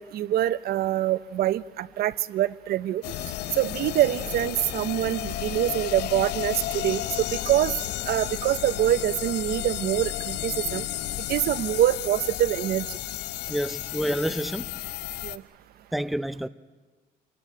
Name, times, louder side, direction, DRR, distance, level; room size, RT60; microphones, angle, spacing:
voice 1, 0.0-3.0 3.5-7.7 8.1-10.9 11.3-13.0 15.2-15.4, right 13 dB, 65° right, 0.7 m, -25 dB
sound 1, 3.0-15.4, left 14 dB, 75° left, 0.9 m, -32 dB
voice 2, 13.5-14.7 15.9-16.5, equal, ahead, 0.7 m, -28 dB
27.5 x 17.0 x 9.9 m
cardioid pair, 110°, 17 cm